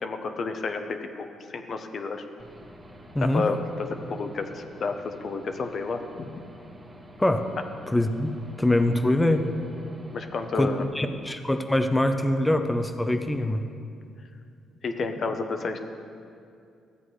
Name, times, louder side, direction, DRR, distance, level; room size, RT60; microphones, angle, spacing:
voice 1, 0.0-2.3 3.2-6.4 10.1-11.2 14.8-15.8, left 4 dB, 50° left, 7 dB, 0.7 m, -31 dB
Aircraft / Engine, 2.4-10.8, equal, 20° right, 1.3 m, -48 dB
voice 2, 7.9-8.3 8.6-9.4 10.5-13.6, left 1 dB, 10° left, 7 dB, 0.6 m, -23 dB
14.0 x 8.1 x 3.1 m, 2.4 s
cardioid pair, 90°, 0 cm